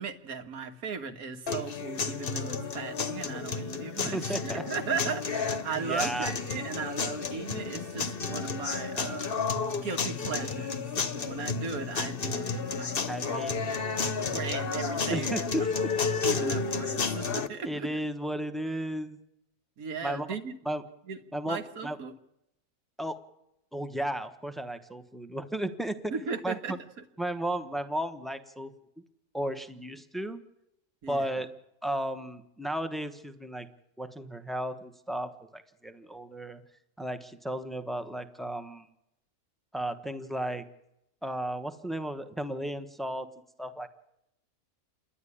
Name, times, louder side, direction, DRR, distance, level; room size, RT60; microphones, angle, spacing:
voice 1, 0.0-9.4 9.8-13.4 13.8-15.4 16.2-17.9 19.8-20.5 21.1-21.2 21.5-22.1 26.1-26.7 31.0-31.3, right 5 dB, 75° right, 1.8 m, -37 dB
sound 1, 1.5-17.5, left 5 dB, 45° left, 1.0 m, -32 dB
voice 2, 4.0-4.6 5.7-6.3 13.1-13.7 15.1-15.9 17.6-19.2 20.0-20.3 20.6-20.8 21.3-22.0 23.0-23.2 23.7-26.1 26.4-26.8 27.2-28.7 29.3-30.4 31.1-31.5 31.8-33.7 34.0-36.6 37.0-38.9 39.7-40.6 41.2-43.3 43.6-43.9, right 1 dB, ahead, 0.6 m, -34 dB
28.0 x 11.5 x 9.9 m
omnidirectional pair, 1.5 m